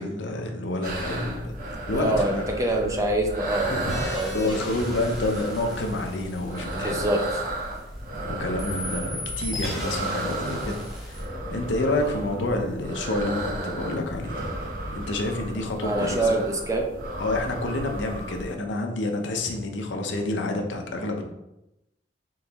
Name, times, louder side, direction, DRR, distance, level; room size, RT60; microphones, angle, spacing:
voice 1, 0.0-2.4 2.8-3.1 3.7-7.0 8.3-14.5 14.9-16.4 17.2-21.2, left 2 dB, 80° left, 3 dB, 0.6 m, -29 dB
sound 1, 0.8-18.5, right 1 dB, 50° right, 1.0 m, -34 dB
voice 2, 2.0-3.7 4.1-4.6 6.7-7.4 15.8-16.9, right 1 dB, 20° right, 2 dB, 0.6 m, -25 dB
sound 2, 3.9-8.2 8.6-11.3, left 1 dB, ahead, 1.1 m, -37 dB
3.8 x 3.7 x 3.0 m, 0.90 s
head